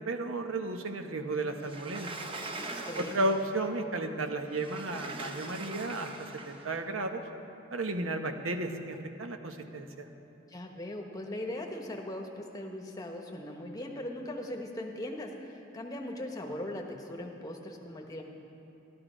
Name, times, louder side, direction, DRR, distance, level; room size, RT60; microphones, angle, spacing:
voice 1, 0.0-2.1 3.0-7.2 7.7-10.1, right 2 dB, 85° right, 6 dB, 1.0 m, -33 dB
Sliding door, 1.6-3.6 4.5-6.7, right 2 dB, 25° right, 0.7 m, -42 dB
voice 2, 2.8-3.4 10.5-18.2, left 1 dB, 20° left, 2 dB, 1.0 m, -39 dB
12.5 x 12.5 x 5.0 m, 3.0 s
head